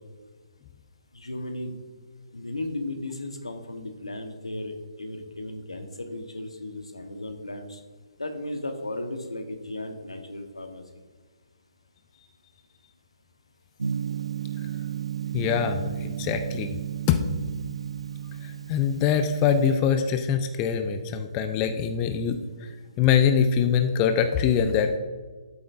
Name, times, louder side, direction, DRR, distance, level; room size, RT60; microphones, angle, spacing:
voice 1, 1.1-1.8 2.3-7.8 8.2-10.8, left 1 dB, 85° left, 5 dB, 1.2 m, -35 dB
Gong, 13.8-19.7, right 9 dB, 80° right, 0.7 m, -33 dB
voice 2, 15.3-16.7 17.1-17.2 18.4-24.9, left 7 dB, 25° left, 7 dB, 0.5 m, -24 dB
11.5 x 8.5 x 2.6 m, 1.4 s
figure-of-eight pair, 140°, 3 cm